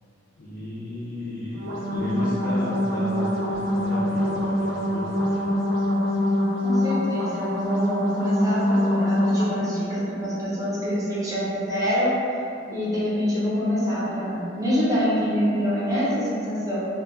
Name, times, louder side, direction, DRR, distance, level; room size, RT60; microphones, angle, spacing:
voice 1, 0.4-5.4, left 1 dB, 60° left, -11 dB, 0.5 m, -34 dB
sound 1, 1.5-9.5, left 1 dB, 70° right, 0.5 m, -24 dB
voice 2, 6.6-12.1 12.7-16.8, equal, 20° right, -9 dB, 0.7 m, -25 dB
2.3 x 2.0 x 3.5 m, 2.6 s
head